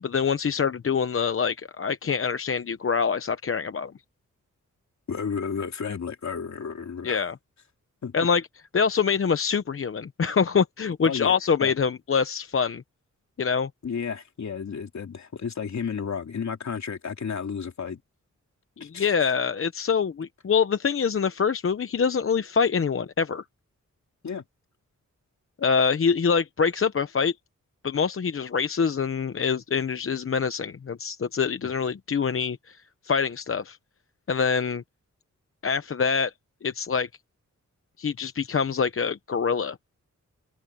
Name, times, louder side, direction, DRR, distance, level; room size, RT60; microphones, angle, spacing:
voice 1, 0.0-3.9 7.0-7.4 8.1-8.4 8.7-12.8 13.4-13.7 18.8-23.4 25.6-27.3 27.8-32.8 33.0-33.8 34.3-34.8 35.6-36.3 36.6-37.1 38.0-39.8, left 6 dB, 45° left, 0.8 m, -25 dB
voice 2, 5.1-7.2 8.0-8.1 11.0-11.3 11.6-11.7 13.8-18.0 18.8-19.1 24.2-24.4 31.6-31.7, left 6 dB, 65° left, 3.2 m, -32 dB
open air
wide cardioid pair, 135°, 30 cm